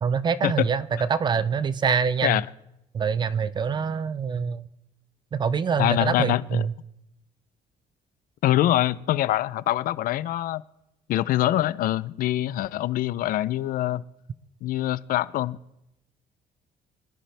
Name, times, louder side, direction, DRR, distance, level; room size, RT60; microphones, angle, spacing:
voice 1, 0.0-2.4 2.9-4.6 5.3-6.7, right 6 dB, 25° right, 0.4 m, -25 dB
voice 2, 5.8-6.7 8.4-10.6 11.1-14.0 14.6-15.6, left 14 dB, 60° left, 0.5 m, -24 dB
25.0 x 10.5 x 3.3 m
cardioid pair, 160°, 17 cm